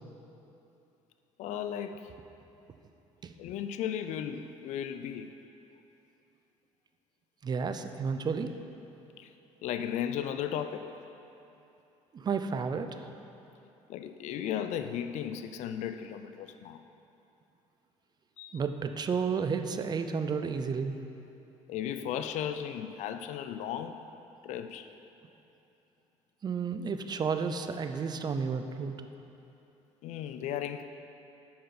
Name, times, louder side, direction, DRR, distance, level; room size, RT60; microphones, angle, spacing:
voice 1, 1.4-2.1 3.4-5.3 7.8-7.9 9.2-9.3 9.6-10.9 13.9-16.8 18.4-18.6 21.7-24.1 24.4-24.9 30.0-30.8, left 9 dB, 65° left, 9 dB, 0.4 m, -35 dB
voice 2, 7.4-8.5 12.1-12.9 18.5-21.0 26.4-29.1, right 5 dB, 35° right, 8 dB, 0.5 m, -32 dB
8.6 x 5.6 x 6.0 m, 2.9 s
cardioid pair, 105°, 13 cm